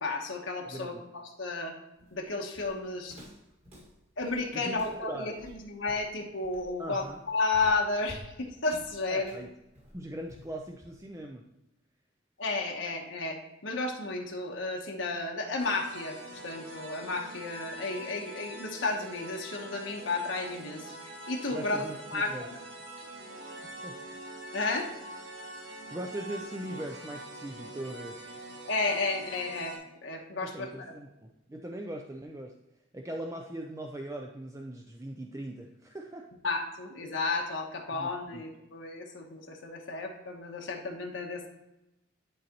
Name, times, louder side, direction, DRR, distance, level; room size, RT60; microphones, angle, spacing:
voice 1, 0.0-1.7 2.1-3.2 4.2-9.4 12.4-16.2 16.4-22.3 24.5-24.9 28.7-29.7 30.0-30.8 36.4-41.5, left 3 dB, 75° left, 1 dB, 1.1 m, -32 dB
voice 2, 0.7-1.0 4.5-4.8 5.1-5.3 6.8-7.2 9.1-9.5 9.9-11.4 21.5-22.5 23.6-24.0 25.9-28.4 30.4-32.6 32.9-36.3 37.9-38.4, right 1 dB, 15° right, 2 dB, 0.4 m, -40 dB
Walk footsteps, 2.0-11.2, equal, 30° right, 1.9 m, -52 dB
sound 1, 15.6-29.8, right 1 dB, 80° right, 1.9 m, -44 dB
11.0 x 4.1 x 2.9 m, 0.93 s
head